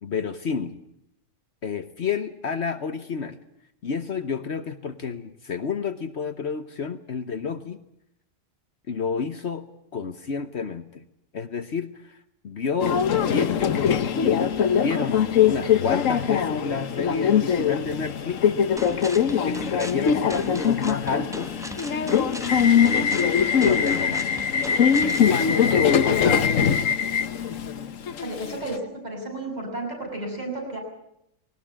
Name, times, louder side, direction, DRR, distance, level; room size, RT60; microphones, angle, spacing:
voice 1, 0.0-0.8 1.6-3.4 3.8-7.8 8.9-9.7 9.9-11.0 11.3-12.2 12.4-18.4 19.5-21.6 22.7-24.3 25.2-26.6, left 5 dB, 60° left, 10 dB, 1.3 m, -30 dB
Subway metro underground, 12.8-28.8, left 7 dB, 80° left, 1.4 m, -22 dB
sound 1, 18.8-25.3, equal, 5° right, 0.7 m, -38 dB
voice 2, 26.0-26.3 28.2-30.8, right 2 dB, 30° right, 1 dB, 6.7 m, -33 dB
19.5 x 19.0 x 8.8 m, 0.80 s
omnidirectional pair, 1.3 m